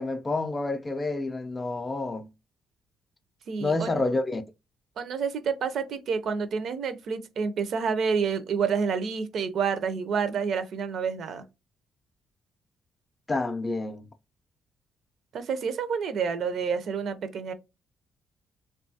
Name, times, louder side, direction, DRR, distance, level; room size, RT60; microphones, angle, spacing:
voice 1, 0.0-2.3 3.6-4.4 13.3-14.1, left 2 dB, 25° left, 0.4 m, -28 dB
voice 2, 3.5-4.0 5.0-11.4 15.3-17.5, right 6 dB, 65° right, 0.4 m, -29 dB
2.9 x 2.3 x 2.6 m
cardioid pair, 90°, 0 cm